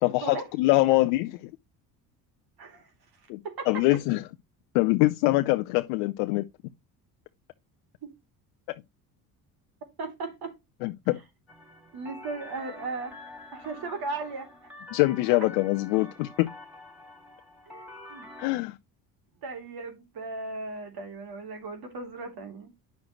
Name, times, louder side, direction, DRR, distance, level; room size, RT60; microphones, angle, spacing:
voice 1, 0.0-1.5 3.3-3.4 3.7-4.2 4.7-6.4 8.7-8.8 10.8-11.2 14.9-16.5 18.4-18.8, left 20 dB, 75° left, 0.7 m, -24 dB
voice 2, 2.6-2.9 3.4-3.8 8.0-8.1 10.0-10.6 11.9-13.1 13.5-14.5 17.7-17.8 18.1-18.2 19.4-22.7, right 3 dB, 55° right, 3.1 m, -36 dB
sound 1, 11.5-18.5, left 2 dB, ahead, 4.3 m, -47 dB
9.2 x 6.4 x 3.1 m
hypercardioid pair, 65°, 44 cm